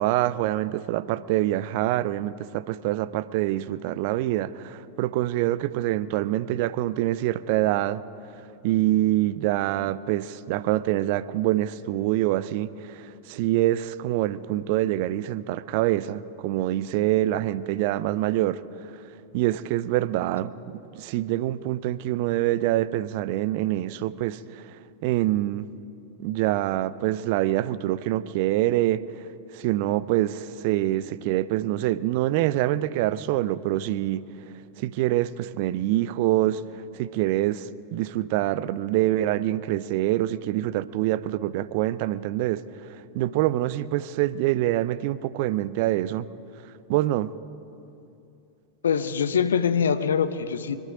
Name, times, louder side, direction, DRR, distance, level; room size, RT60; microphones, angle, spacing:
voice 1, 0.0-8.0 8.6-18.6 19.3-20.5 20.9-24.6 25.0-25.7 26.2-29.0 29.5-34.2 34.8-36.6 36.9-42.6 43.1-46.3 46.9-47.3, right 15 dB, 45° right, 0.5 m, -25 dB
voice 2, 48.8-50.8, left 7 dB, 65° left, 0.8 m, -23 dB
24.0 x 12.0 x 5.0 m
figure-of-eight pair, 90°, 0 cm